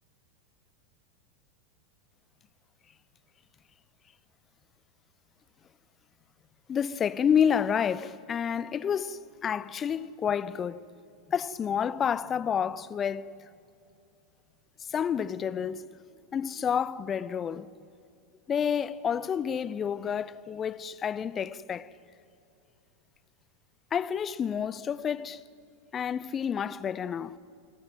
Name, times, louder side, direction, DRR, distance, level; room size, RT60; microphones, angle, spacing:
voice 1, 6.7-10.8 11.3-13.5 14.9-15.9 16.3-17.7 18.5-21.9 23.9-25.4 25.9-27.4, left 8 dB, 25° left, 0.8 m, -29 dB
29.5 x 20.5 x 9.0 m
figure-of-eight pair, 90°, 0 cm